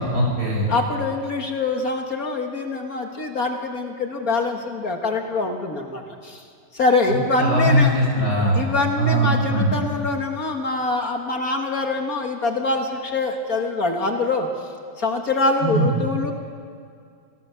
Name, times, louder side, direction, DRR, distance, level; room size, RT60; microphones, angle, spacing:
voice 1, 0.0-0.7 7.1-8.6 9.0-9.7 15.6-15.9, right 1 dB, 55° right, -3 dB, 7.6 m, -20 dB
voice 2, 0.7-6.4 6.7-7.9 8.6-14.5 15.0-16.3, left 3 dB, 50° left, 3 dB, 2.1 m, -24 dB
27.5 x 17.5 x 7.1 m, 2.3 s
omnidirectional pair, 2.0 m